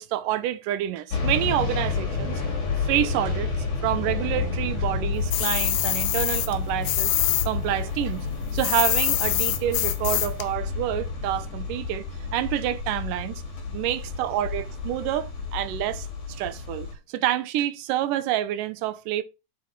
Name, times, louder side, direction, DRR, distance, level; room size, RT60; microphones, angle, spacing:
voice 1, 0.0-2.4 2.8-7.1 7.5-8.3 8.5-12.0 12.3-13.4 13.7-16.1 16.4-19.2, right 12 dB, 80° right, 2.3 m, -28 dB
sound 1, 1.1-17.0, left 4 dB, 65° left, 3.8 m, -30 dB
sound 2, 5.3-7.5 7.8-10.5, left 15 dB, 85° left, 1.6 m, -25 dB
8.4 x 4.6 x 4.6 m
omnidirectional pair, 3.9 m